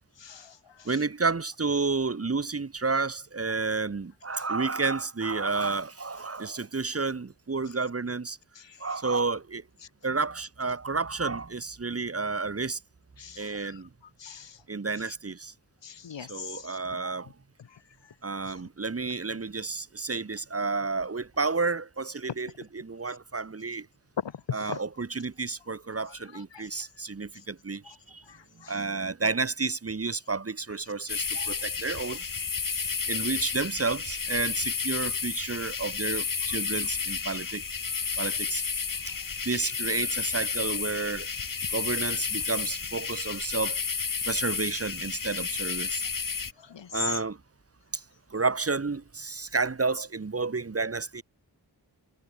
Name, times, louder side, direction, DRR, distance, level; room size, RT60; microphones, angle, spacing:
voice 1, 0.2-0.9 4.4-4.5 8.6-8.9 9.8-9.9 13.2-13.8 14.2-14.6 15.0-15.2 15.8-16.8 17.7-18.1 18.4-18.5 24.2-24.8 26.1-26.9 28.3-28.8 32.6-33.0 36.7-36.8 37.9-38.3 39.0-39.5 46.6-47.2, left 7 dB, 80° left, 2.1 m, -40 dB
voice 2, 0.8-8.4 8.8-9.6 10.0-12.8 13.4-13.9 14.7-15.5 16.3-17.3 18.2-23.9 24.5-27.8 28.1-28.2 28.7-32.2 33.1-37.6 38.2-38.6 39.4-41.3 41.7-43.8 44.3-46.0 46.9-47.4 47.9-48.0 48.3-51.2, right 4 dB, 35° right, 1.5 m, -31 dB
sound 1, 31.1-46.5, left 5 dB, 50° left, 2.0 m, -31 dB
wide cardioid pair, 85°, 43 cm